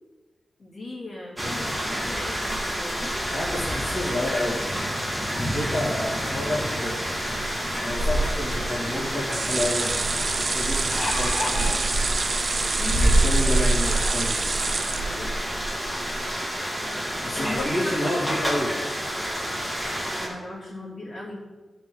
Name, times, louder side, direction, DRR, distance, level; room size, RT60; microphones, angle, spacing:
voice 1, 0.6-3.0 12.8-14.4 15.0-15.6 17.4-17.9 18.3-18.4 20.2-21.4, left 1 dB, 60° left, -6 dB, 3.0 m, -38 dB
sound 1, 1.4-20.3, right 1 dB, 5° left, 2.0 m, -27 dB
voice 2, 3.3-7.1 7.8-11.8 13.0-14.4 17.2-18.8, left 1 dB, 35° left, -8 dB, 2.3 m, -30 dB
sound 2, 9.3-15.6 16.0-16.1 16.4-16.5, right 4 dB, 45° right, 0.4 m, -28 dB
sound 3, 10.6-11.8 12.7-12.8 13.2-13.3, left 2 dB, 80° left, 1.1 m, -30 dB
14.0 x 6.3 x 3.9 m, 1.3 s
wide cardioid pair, 165°, 0 cm